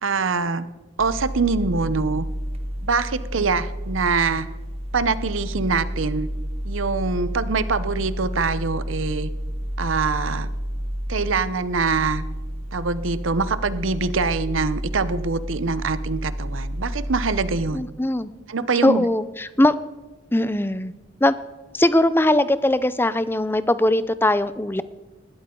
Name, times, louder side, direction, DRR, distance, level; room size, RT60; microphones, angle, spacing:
voice 1, 0.0-0.7 1.0-2.2 2.8-4.5 4.9-6.3 6.6-9.3 9.8-10.5 11.1-12.2 12.7-17.9 18.5-19.0, right 4 dB, 85° right, 14 dB, 0.8 m, -24 dB
sound 1, 1.0-17.7, equal, 30° right, 1.4 m, -30 dB
voice 2, 17.7-18.3 18.8-19.7 20.3-20.9 21.2-21.4 21.7-24.8, left 1 dB, 10° left, 15 dB, 0.5 m, -20 dB
20.0 x 13.0 x 3.8 m, 1.2 s
head